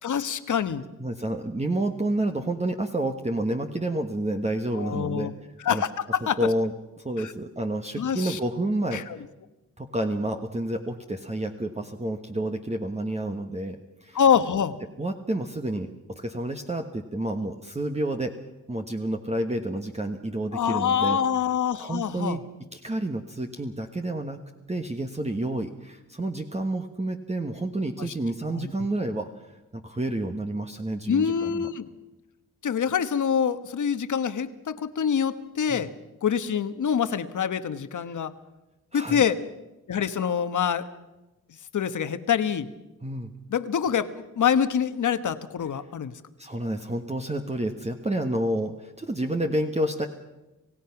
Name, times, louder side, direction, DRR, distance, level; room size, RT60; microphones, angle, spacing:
voice 1, 0.0-0.8 4.7-5.3 5.6-6.4 7.2-7.3 8.0-8.4 8.9-9.2 14.1-14.7 20.5-22.4 28.0-28.1 28.6-28.7 31.1-31.9 32.6-35.9 36.2-38.3 38.9-39.4 39.9-40.9 41.7-42.7 43.5-44.1 44.4-46.1, left 7 dB, 65° left, 11 dB, 1.3 m, -25 dB
voice 2, 1.0-5.3 5.7-5.8 6.4-9.0 9.8-14.2 15.0-18.3 18.7-21.2 21.8-22.4 22.7-24.4 24.7-29.3 29.7-31.7 35.7-35.9 38.1-38.2 38.9-39.2 43.0-43.3 46.4-50.1, right 1 dB, 20° right, 4 dB, 1.4 m, -29 dB
27.5 x 16.5 x 5.9 m, 1.0 s
cardioid pair, 80°, 32 cm